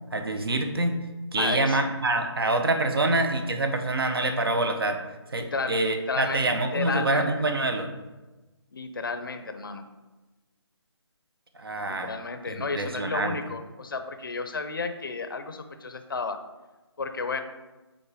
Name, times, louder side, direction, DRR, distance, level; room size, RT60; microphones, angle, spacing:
voice 1, 0.1-1.0 1.3-5.0 5.3-7.9 11.5-12.1 12.5-13.4, right 2 dB, 55° right, 6 dB, 0.8 m, -26 dB
voice 2, 1.4-1.9 5.4-5.8 6.1-7.4 8.7-9.9 11.9-16.4 17.0-17.4, left 4 dB, 50° left, 8 dB, 0.6 m, -32 dB
5.7 x 4.3 x 4.9 m, 1.1 s
hypercardioid pair, 175°, 15 cm